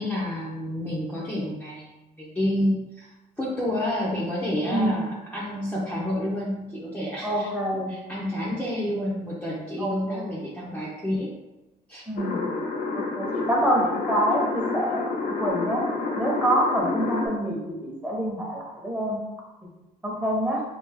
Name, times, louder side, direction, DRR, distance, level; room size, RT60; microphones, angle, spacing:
voice 1, 0.0-3.1 3.4-11.3 11.9-12.1, left 1 dB, 10° left, -6 dB, 0.7 m, -29 dB
voice 2, 7.2-8.0 8.3-8.4 9.8-10.3 12.1-12.5 12.9-15.8 16.2-19.2 20.0-20.6, right 1 dB, 10° right, -3 dB, 1.0 m, -26 dB
sound 1, 12.2-17.3, left 4 dB, 65° left, 0.8 m, -29 dB
3.4 x 2.4 x 3.6 m, 1.0 s
cardioid pair, 110°, 17 cm